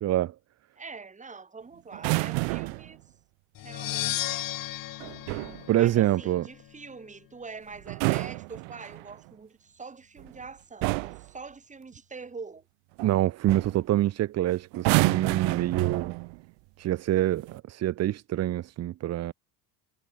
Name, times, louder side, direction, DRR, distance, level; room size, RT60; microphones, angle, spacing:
voice 1, 0.0-0.3 5.7-6.5 13.0-16.1 16.8-19.3, right 13 dB, 35° right, 0.6 m, -26 dB
voice 2, 0.8-3.0 3.6-4.4 5.7-12.6, right 4 dB, 15° right, 2.4 m, -44 dB
sound 1, 1.9-2.9 5.0-5.6 7.8-9.1 10.2-10.4 10.8-11.3 13.0-13.2 13.5-13.8 14.7-16.4 17.3-17.6, right 37 dB, 70° right, 0.8 m, -28 dB
sound 2, 3.6-6.4, left 14 dB, 45° left, 1.4 m, -34 dB
supercardioid pair, 100°, 47 cm